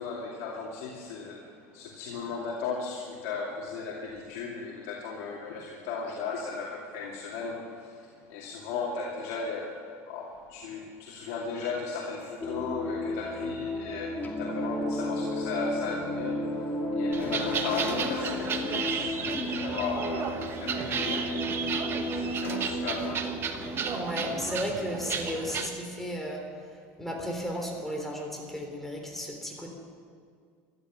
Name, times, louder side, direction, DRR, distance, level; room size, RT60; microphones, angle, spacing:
voice 1, 0.0-21.7 22.0-23.3, left 4 dB, 70° left, -3 dB, 2.7 m, -36 dB
sound 1, 12.4-25.0, left 1 dB, 25° left, 2.5 m, -33 dB
sound 2, 17.1-25.7, right 6 dB, 35° right, 1.4 m, -33 dB
voice 2, 23.9-26.4 27.0-29.7, equal, 5° left, 0 dB, 3.5 m, -34 dB
15.0 x 11.5 x 7.6 m, 2.2 s
supercardioid pair, 125°, 7 cm